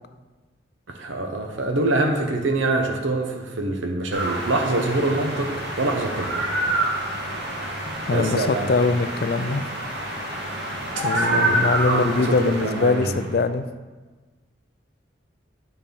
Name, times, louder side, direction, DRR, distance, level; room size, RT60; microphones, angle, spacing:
voice 1, 0.9-5.5 5.8-6.4 8.1-8.7 10.3-10.6 11.1-13.2, right 2 dB, 90° right, 3 dB, 0.9 m, -25 dB
sound 1, 4.1-13.3, right 1 dB, 60° right, 2.1 m, -27 dB
voice 2, 8.1-9.7 11.0-13.7, left 3 dB, 50° left, 11 dB, 0.4 m, -22 dB
9.3 x 4.4 x 5.2 m, 1.3 s
head